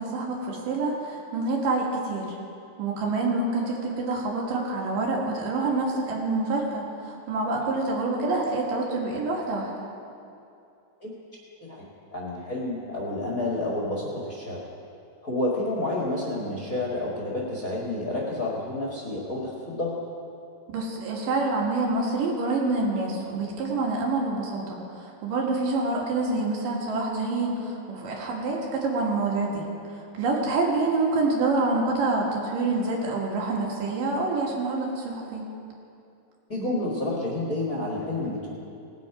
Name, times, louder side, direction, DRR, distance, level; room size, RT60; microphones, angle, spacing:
voice 1, 0.0-2.3 2.8-9.7 20.7-29.6 30.1-35.5, right 3 dB, 85° right, -2 dB, 3.4 m, -27 dB
voice 2, 12.1-14.6 15.2-19.9 36.5-38.5, left 2 dB, 35° left, -4 dB, 1.4 m, -29 dB
18.5 x 8.3 x 4.8 m, 2.6 s
omnidirectional pair, 3.7 m